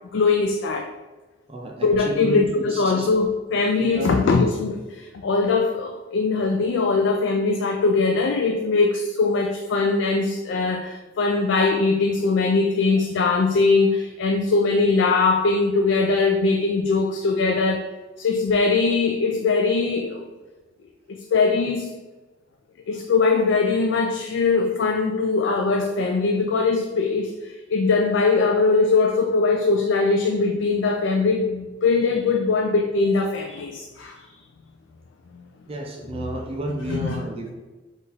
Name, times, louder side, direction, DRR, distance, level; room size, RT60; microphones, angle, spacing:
voice 1, 0.1-0.9 1.8-17.8 18.2-20.2 21.1-21.9 22.9-34.2 36.9-37.1, left 4 dB, 65° left, 4 dB, 0.3 m, -21 dB
voice 2, 1.5-3.1 3.8-4.2 35.7-37.5, right 1 dB, 30° right, 0 dB, 0.6 m, -32 dB
4.6 x 2.6 x 4.0 m, 1.2 s
head